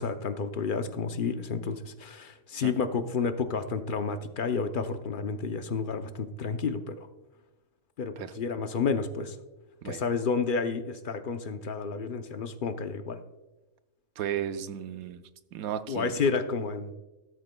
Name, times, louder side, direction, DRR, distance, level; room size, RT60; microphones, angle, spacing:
voice 1, 0.0-7.1 8.0-9.4 9.8-13.2 15.9-16.9, left 5 dB, 50° left, 9 dB, 0.6 m, -30 dB
voice 2, 14.2-15.2 15.5-16.2, right 10 dB, 90° right, 10 dB, 1.1 m, -34 dB
14.5 x 13.0 x 2.2 m, 1.1 s
omnidirectional pair, 1.4 m